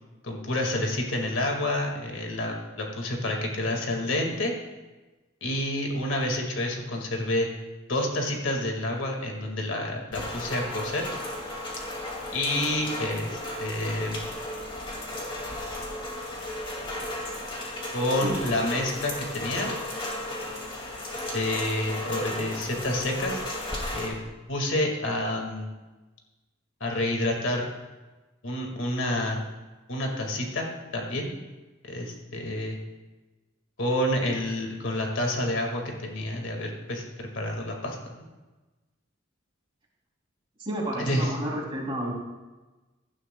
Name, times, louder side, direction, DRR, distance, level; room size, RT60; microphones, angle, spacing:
voice 1, 0.2-4.5 5.4-7.5 7.9-11.1 12.3-14.3 17.9-19.7 21.3-23.4 23.9-24.2 24.5-25.7 26.8-27.7 28.4-29.4 29.9-30.7 30.9-31.4 31.9-32.8 33.8-38.0 41.0-41.3, left 1 dB, 75° left, 1 dB, 1.9 m, -28 dB
Rain, 10.1-24.1, left 1 dB, 25° left, 2.2 m, -34 dB
voice 2, 40.6-42.1, right 1 dB, 25° right, -3 dB, 2.9 m, -31 dB
16.0 x 11.5 x 2.3 m, 1.2 s
head